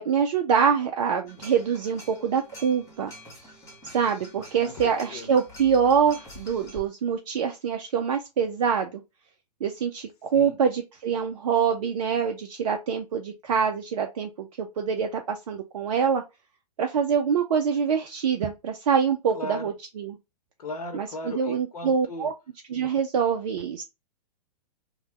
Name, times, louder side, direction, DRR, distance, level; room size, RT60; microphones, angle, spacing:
voice 1, 0.0-3.1 3.9-9.0 9.6-16.2 16.8-20.2 20.9-22.3 22.7-23.8, right 7 dB, 55° right, 0.5 m, -25 dB
sound 1, 1.3-6.8, left 1 dB, 15° left, 1.2 m, -46 dB
voice 2, 4.6-5.3 10.3-10.6 19.3-19.7 20.6-22.3, left 2 dB, 65° left, 0.9 m, -37 dB
3.2 x 2.2 x 3.0 m
figure-of-eight pair, 110°, 21 cm